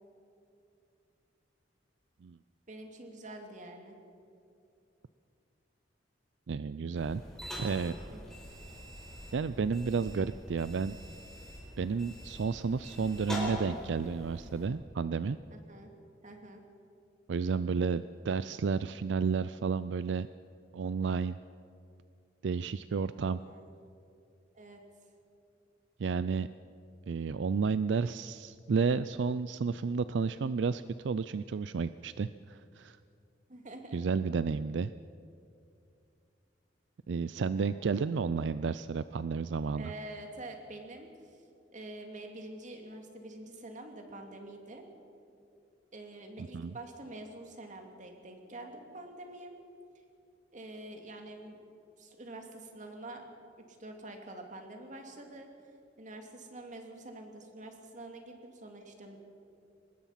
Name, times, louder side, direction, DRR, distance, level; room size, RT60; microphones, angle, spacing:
voice 1, 2.7-4.0 8.1-8.2 15.5-15.9 16.2-16.6 23.2-23.6 24.5-24.8 33.5-34.0 37.4-37.7 39.7-41.4 41.7-44.8 45.9-49.6 50.5-51.6 52.0-53.3 53.6-55.5 56.0-59.2, right 2 dB, 45° right, 4 dB, 2.5 m, -46 dB
voice 2, 6.5-7.2 7.6-8.0 9.3-11.0 11.8-15.4 17.3-20.3 20.7-21.4 22.4-23.4 26.0-26.5 27.1-33.0 33.9-34.9 37.1-39.9 46.5-46.7, right 5 dB, 75° right, 14 dB, 0.4 m, -31 dB
sound 1, 7.0-14.7, equal, 5° left, 4.4 m, -43 dB
23.5 x 20.0 x 5.8 m, 2.5 s
head